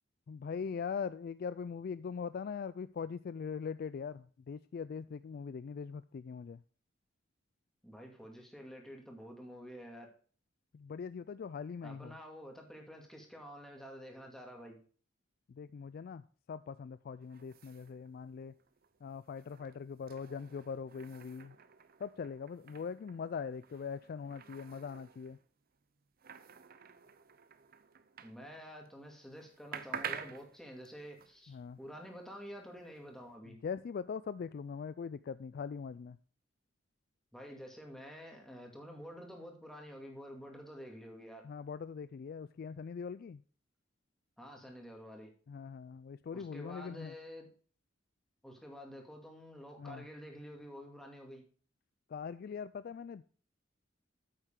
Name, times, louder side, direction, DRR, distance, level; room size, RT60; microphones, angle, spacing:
voice 1, 0.3-6.6 10.7-12.2 15.5-18.5 19.0-21.6 22.0-25.4 31.5-31.8 33.5-36.2 41.4-43.4 45.5-47.2 49.8-50.1 52.1-53.2, left 6 dB, 50° left, 15 dB, 0.3 m, -41 dB
voice 2, 7.8-10.1 11.8-14.8 28.2-33.6 37.3-41.4 44.4-45.3 46.3-47.5 48.4-51.4, equal, ahead, 1 dB, 2.2 m, -49 dB
sound 1, 17.2-28.9 29.2-33.4, right 7 dB, 50° right, 0.7 m, -50 dB
8.9 x 8.1 x 3.7 m, 0.42 s
head